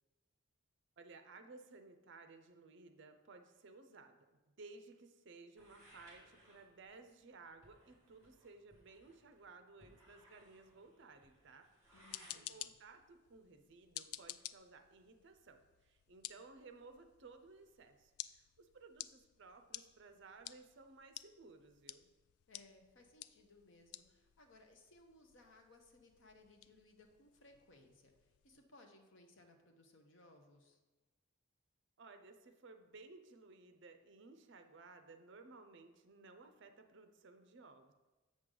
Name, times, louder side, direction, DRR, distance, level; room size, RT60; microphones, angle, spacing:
voice 1, 1.0-4.3 4.6-11.7 12.3-22.1 32.0-37.9, right 3 dB, 55° right, 7 dB, 0.5 m, -58 dB
sound 1, 5.6-12.4, right 1 dB, 15° right, 1.9 m, -65 dB
sound 2, 11.8-28.6, left 13 dB, 85° left, 0.3 m, -54 dB
voice 2, 11.9-12.8 22.5-30.8, left 2 dB, 60° left, 4 dB, 0.9 m, -64 dB
7.5 x 6.4 x 3.8 m, 1.2 s
head